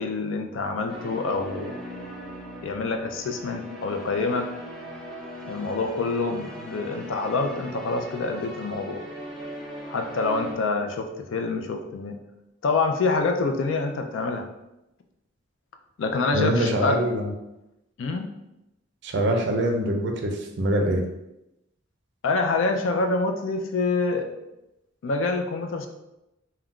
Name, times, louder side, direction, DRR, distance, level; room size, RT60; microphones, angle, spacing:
voice 1, 0.0-1.8 2.6-4.5 5.4-9.1 9.9-12.2 12.6-14.5 16.0-17.0 18.0-18.3 22.2-24.3 25.0-25.9, left 3 dB, 70° left, 5 dB, 0.4 m, -26 dB
sound 1, 0.9-10.5, equal, ahead, 0.5 m, -39 dB
voice 2, 16.3-17.3 19.0-21.0, right 1 dB, 60° right, 3 dB, 0.4 m, -24 dB
2.3 x 2.2 x 3.6 m, 0.90 s
head